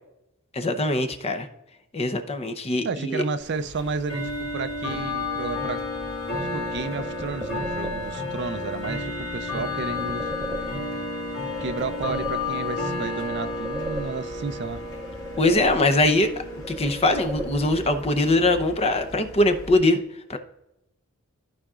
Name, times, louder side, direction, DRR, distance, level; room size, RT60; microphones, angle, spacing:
voice 1, 0.5-1.5 1.9-3.2 15.4-16.3 16.7-20.0 20.3-20.4, left 2 dB, 30° left, 0.7 m, -22 dB
voice 2, 2.8-5.8 6.5-10.3 11.6-14.8, right 4 dB, 55° right, 0.5 m, -32 dB
Bell / Tick-tock, 3.4-19.7, left 2 dB, 65° left, 2.1 m, -32 dB
sound 1, 6.3-8.3 9.8-11.1 11.5-12.8 13.2-14.6 14.9-16.3 16.6-18.0, equal, 10° right, 0.9 m, -37 dB
14.5 x 5.0 x 2.4 m
head